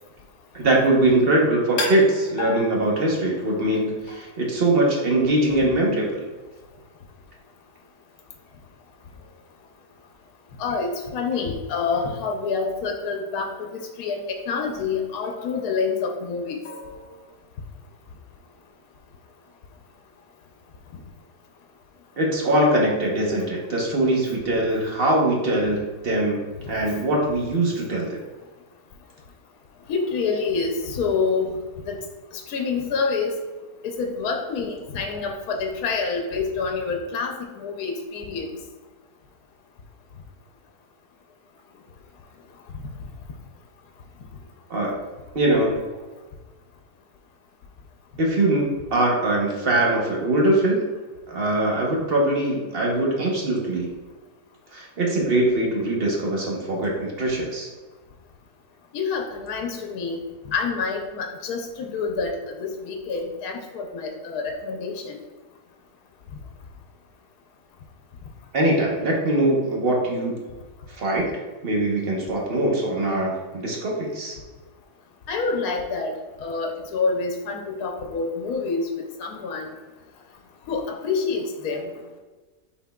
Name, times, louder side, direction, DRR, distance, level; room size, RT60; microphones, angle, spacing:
voice 1, 0.5-6.2 22.2-26.4 26.7-28.2 44.7-45.0 45.3-45.7 48.2-50.8 51.3-53.9 54.7-57.7 68.5-70.3 71.0-71.3 71.6-74.3, right 1 dB, 45° right, -2 dB, 0.9 m, -22 dB
sound 1, 1.8-3.4 4.1-4.5 8.5-8.6 9.1-9.4 10.7-11.7 11.9-13.0 13.4-13.7 15.2-16.2 16.6-17.3, left 2 dB, 55° left, 1.3 m, -36 dB
voice 2, 10.6-16.6 29.9-31.6 31.9-32.0 32.3-33.3 33.8-38.5 58.9-60.2 60.5-65.2 75.3-76.1 76.4-78.9 79.2-79.7 80.7-81.8, left 4 dB, 80° left, 2 dB, 1.1 m, -27 dB
5.8 x 4.0 x 2.2 m, 1.3 s
omnidirectional pair, 1.6 m